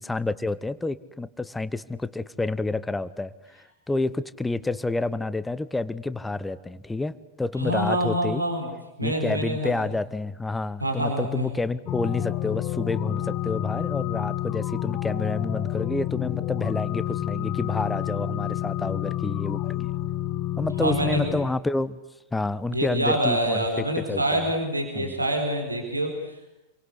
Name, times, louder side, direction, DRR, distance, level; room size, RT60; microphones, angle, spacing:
voice 1, 0.0-3.3 3.9-8.5 9.0-19.6 20.6-22.0 22.3-23.6 24.0-24.4 25.0-25.1, left 2 dB, 10° left, 15 dB, 1.0 m, -29 dB
voice 2, 7.6-8.7 9.0-9.7 10.8-11.5 20.8-21.3 22.7-26.5, right 1 dB, 85° right, 3 dB, 4.4 m, -26 dB
sound 1, 11.9-21.5, left 13 dB, 35° left, 1.3 m, -29 dB
29.0 x 24.0 x 8.2 m, 0.92 s
figure-of-eight pair, 90°, 0 cm